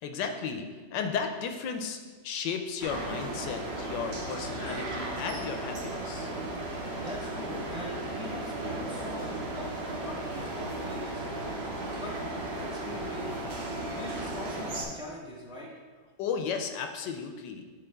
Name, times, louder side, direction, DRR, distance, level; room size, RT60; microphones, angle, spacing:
voice 1, 0.0-6.3 16.2-17.6, left 6 dB, 80° left, 5 dB, 1.3 m, -34 dB
sound 1, 2.8-14.8, right 1 dB, 45° right, 1.0 m, -35 dB
voice 2, 7.0-11.2 12.0-12.1 12.5-13.4 13.9-15.7, left 1 dB, 5° right, -3 dB, 0.9 m, -42 dB
10.5 x 3.7 x 3.5 m, 1.4 s
omnidirectional pair, 1.9 m